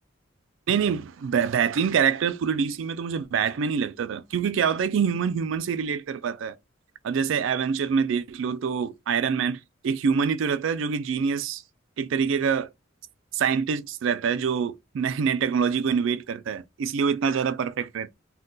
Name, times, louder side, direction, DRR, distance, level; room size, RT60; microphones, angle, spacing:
voice 1, 0.7-6.6 7.0-9.6 9.8-11.6 12.0-12.7 13.3-18.2, right 6 dB, 70° right, 0.4 m, -25 dB
2.2 x 2.2 x 3.8 m
head